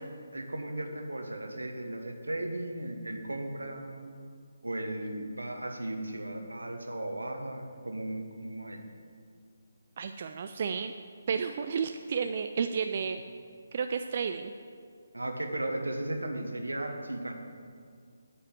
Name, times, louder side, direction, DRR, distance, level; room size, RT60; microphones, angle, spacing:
voice 1, 0.3-4.1 4.6-8.8 15.1-17.3, right 1 dB, 75° right, 4 dB, 1.3 m, -36 dB
voice 2, 10.0-10.9 11.3-13.2 13.7-14.5, right 6 dB, 40° right, 7 dB, 0.3 m, -32 dB
9.0 x 5.3 x 7.7 m, 2.2 s
figure-of-eight pair, 145°, 0 cm